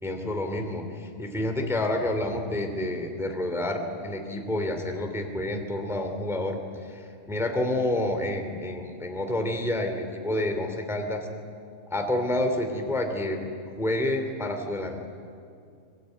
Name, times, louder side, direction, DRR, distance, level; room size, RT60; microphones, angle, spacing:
voice 1, 0.0-11.3 11.9-13.4 13.8-15.1, left 1 dB, ahead, 4 dB, 2.1 m, -29 dB
25.5 x 22.0 x 9.1 m, 2.4 s
omnidirectional pair, 4.5 m